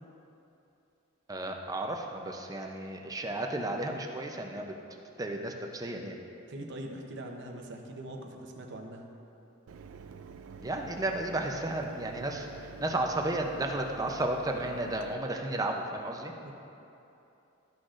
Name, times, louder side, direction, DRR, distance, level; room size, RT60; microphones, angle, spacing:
voice 1, 1.3-4.8 5.2-6.2 10.6-16.3, right 1 dB, 15° right, 2 dB, 0.5 m, -33 dB
voice 2, 6.5-9.1 16.4-16.5, right 1 dB, 55° right, 2 dB, 0.8 m, -42 dB
Mechanisms, 9.7-15.1, right 5 dB, 75° right, 0.4 m, -48 dB
13.0 x 6.3 x 2.5 m, 2.8 s
head